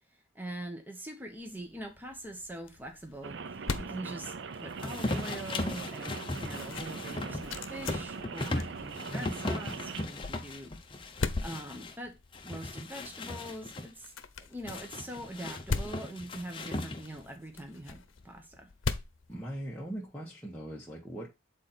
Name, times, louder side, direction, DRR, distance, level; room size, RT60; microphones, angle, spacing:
voice 1, 0.1-14.1 14.4-18.7, right 1 dB, 10° right, 1.1 m, -43 dB
sound 1, 1.4-20.1, left 3 dB, 85° left, 0.7 m, -41 dB
Rain, 3.2-10.1, right 5 dB, 60° right, 0.5 m, -41 dB
sound 2, 4.8-11.9 12.3-13.9 14.7-17.3, left 2 dB, 25° left, 0.8 m, -37 dB
voice 2, 9.1-9.4 19.3-21.3, right 1 dB, 5° left, 1.2 m, -40 dB
8.4 x 3.9 x 4.3 m
head